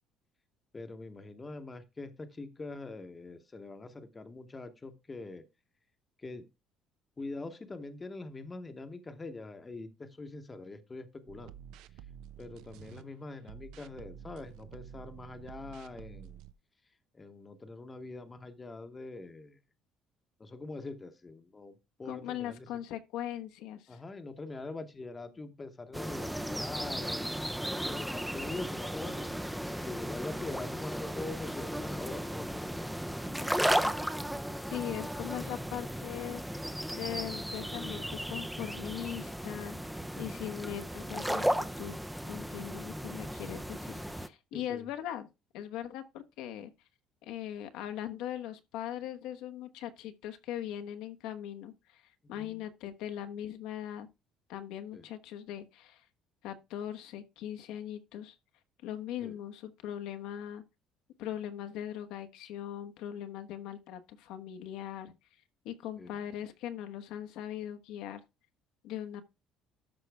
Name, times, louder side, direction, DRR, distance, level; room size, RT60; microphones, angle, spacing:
voice 1, 0.7-5.4 6.2-6.5 7.2-11.6 12.4-16.4 17.1-19.6 20.4-22.7 23.9-27.4 27.8-29.3 29.8-33.5 40.0-40.4 44.5-44.9 52.4-52.7 54.9-55.1 59.2-59.4 66.0-66.2, left 3 dB, 15° left, 1.0 m, -44 dB
sound 1, 11.3-13.0 13.4-16.5, right 10 dB, 80° right, 0.8 m, -50 dB
voice 2, 22.1-24.0 34.7-36.4 36.9-39.8 40.2-41.5 41.8-45.3 45.5-46.7 47.2-54.1 54.5-56.1 56.4-58.3 58.8-60.6 61.2-65.1 65.6-68.2 68.8-69.2, left 11 dB, 75° left, 1.2 m, -40 dB
sound 2, 25.9-44.3, equal, ahead, 0.5 m, -35 dB
13.0 x 5.6 x 3.4 m
cardioid pair, 175°, 0 cm